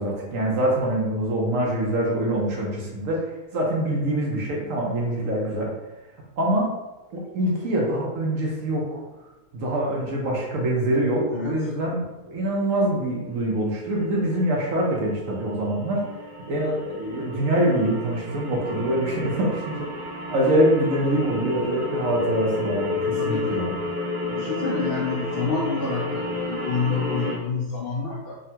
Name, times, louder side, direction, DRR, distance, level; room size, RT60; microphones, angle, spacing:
voice 1, 0.0-5.7 6.4-6.8 7.1-9.0 9.5-16.0 16.5-19.9 20.3-23.8, right 1 dB, 75° right, -2 dB, 1.2 m, -24 dB
sound 1, 12.2-12.7 14.5-14.6 14.9-27.4, left 2 dB, 50° right, 1.1 m, -31 dB
voice 2, 22.9-23.6 24.3-28.4, left 4 dB, 65° left, -4 dB, 0.6 m, -28 dB
3.5 x 2.2 x 2.8 m, 1.0 s
omnidirectional pair, 1.4 m